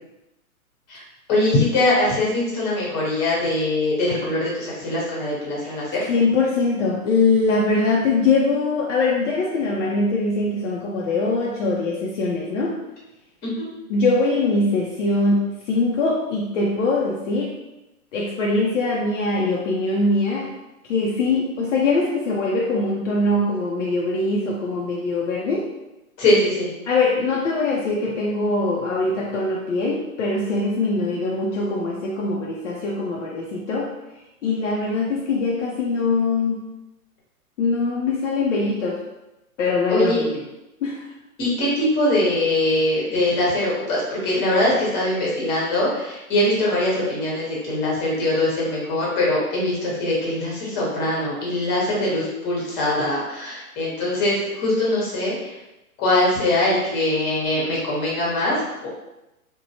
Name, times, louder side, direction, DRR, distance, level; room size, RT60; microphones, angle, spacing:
voice 1, 1.3-6.0 13.4-13.7 26.2-26.7 39.9-40.2 41.4-55.5 56.0-58.9, left 1 dB, 20° left, -5 dB, 0.9 m, -22 dB
voice 2, 6.1-12.8 13.9-17.6 18.1-20.6 20.9-25.7 26.9-33.9 34.4-36.6 37.6-39.0 39.6-40.4 40.8-41.0, left 3 dB, 55° left, -3 dB, 0.6 m, -22 dB
2.9 x 2.1 x 2.7 m, 0.95 s
hypercardioid pair, 125°, 44 cm